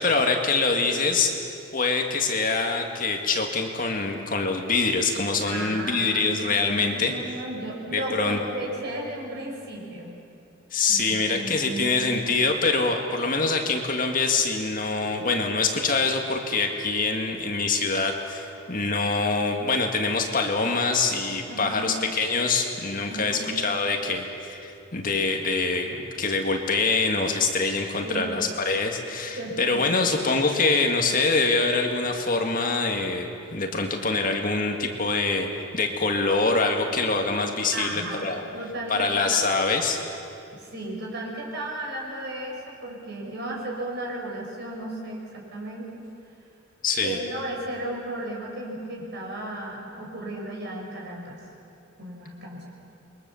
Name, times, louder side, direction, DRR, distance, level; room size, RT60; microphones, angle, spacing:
voice 1, 0.0-1.3 1.7-7.1 7.9-8.4 10.7-35.5 35.7-38.4 38.9-40.0 46.8-47.2, left 3 dB, 40° left, 3 dB, 2.0 m, -24 dB
voice 2, 5.5-10.1 10.9-12.2 21.5-22.0 23.1-23.4 28.0-28.5 29.4-30.2 37.7-39.5 40.6-45.9 47.0-51.4 52.0-52.7, right 1 dB, 50° right, -2 dB, 6.0 m, -35 dB
28.5 x 23.0 x 7.1 m, 2.6 s
head